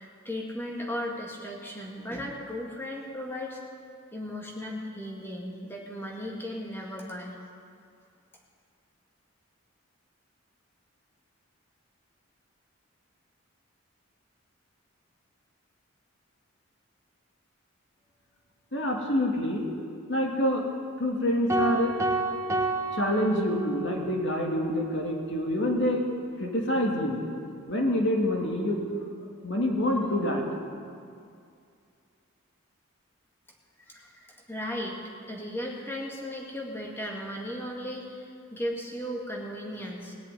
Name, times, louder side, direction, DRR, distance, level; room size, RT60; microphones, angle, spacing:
voice 1, 0.0-3.6 4.1-7.4 33.8-40.1, equal, 10° left, -1 dB, 2.1 m, -36 dB
voice 2, 18.7-19.7 20.1-20.6 21.0-22.0 22.9-26.0 26.4-27.3 27.7-28.9 29.4-30.4, left 1 dB, 55° left, 0 dB, 2.3 m, -26 dB
sound 1, 21.5-24.0, right 2 dB, 15° right, 1.0 m, -29 dB
19.0 x 7.6 x 9.3 m, 2.4 s
head